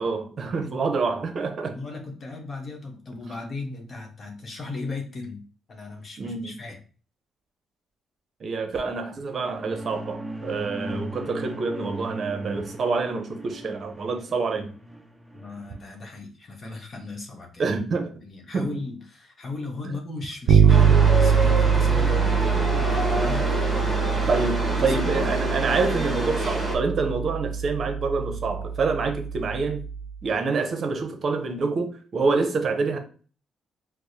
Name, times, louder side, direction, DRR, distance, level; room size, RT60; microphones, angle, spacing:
voice 1, 0.0-1.8 6.2-6.5 8.4-14.7 17.6-18.2 18.5-18.8 19.8-20.0 24.3-29.8 30.2-33.0, right 4 dB, 50° right, 0.7 m, -27 dB
voice 2, 1.7-5.4 5.7-6.8 15.3-17.6 18.2-24.4 24.8-25.3, left 3 dB, 40° left, 0.9 m, -37 dB
sound 1, 9.2-15.9, right 1 dB, 5° right, 0.5 m, -38 dB
Bass guitar, 20.5-30.1, right 7 dB, 80° right, 0.3 m, -23 dB
Chatter / Subway metro underground, 20.7-26.8, equal, 20° right, 1.1 m, -28 dB
4.6 x 2.0 x 2.7 m
cardioid pair, 90°, 0 cm